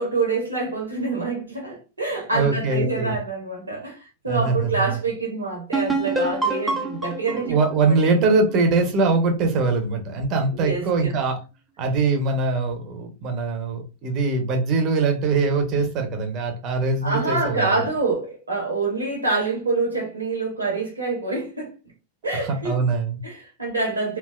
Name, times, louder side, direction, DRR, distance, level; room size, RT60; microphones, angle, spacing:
voice 1, 0.0-7.6 7.9-8.0 10.5-11.1 17.0-21.7 22.2-22.8 23.2-24.2, right 3 dB, 75° right, 1.1 m, -26 dB
voice 2, 2.3-3.2 4.3-4.8 7.3-11.4 11.8-17.8 22.3-23.2, right 3 dB, 35° right, 0.9 m, -22 dB
sound 1, 5.7-9.3, right 2 dB, 5° right, 0.7 m, -27 dB
3.5 x 2.6 x 2.4 m
figure-of-eight pair, 90°, 0 cm